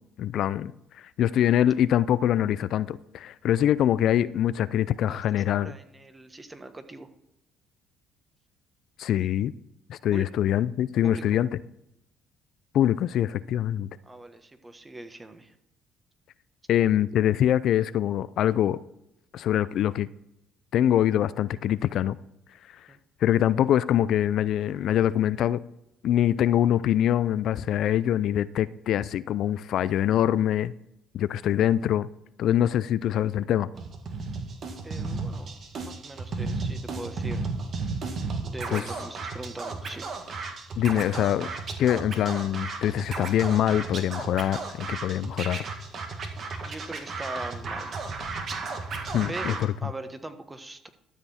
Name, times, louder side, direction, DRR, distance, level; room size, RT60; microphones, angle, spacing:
voice 1, 0.2-0.7 1.0-5.8 9.0-9.5 9.9-11.6 12.7-13.9 16.7-18.8 19.3-20.1 20.7-22.2 22.8-22.9 23.2-25.6 26.0-30.7 31.1-32.1 32.4-33.7 38.7-38.8 40.8-41.5 41.8-45.6 49.1-49.7, left 11 dB, 65° left, 0.4 m, -24 dB
voice 2, 5.1-7.1 10.1-10.3 11.0-11.4 14.0-15.5 22.9-23.0 34.8-35.5 35.8-37.4 38.4-40.0 46.6-47.9 49.3-50.9, right 2 dB, 20° right, 1.4 m, -41 dB
Scratching (performance technique), 33.7-49.6, right 3 dB, 55° right, 1.9 m, -34 dB
13.0 x 6.9 x 4.3 m
supercardioid pair, 80°, 0 cm